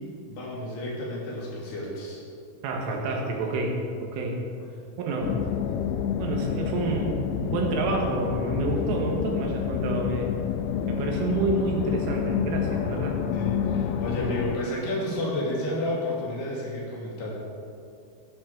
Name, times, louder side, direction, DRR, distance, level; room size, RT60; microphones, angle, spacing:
voice 1, 0.3-2.2 13.3-17.4, left 1 dB, 60° left, -4 dB, 4.3 m, -31 dB
voice 2, 2.6-4.4 5.0-5.4 6.2-10.4 10.9-13.2, right 3 dB, 80° right, 1 dB, 4.1 m, -28 dB
sound 1, 5.2-14.6, left 8 dB, 85° left, 3.0 m, -29 dB
14.5 x 12.5 x 4.4 m, 2.4 s
omnidirectional pair, 5.6 m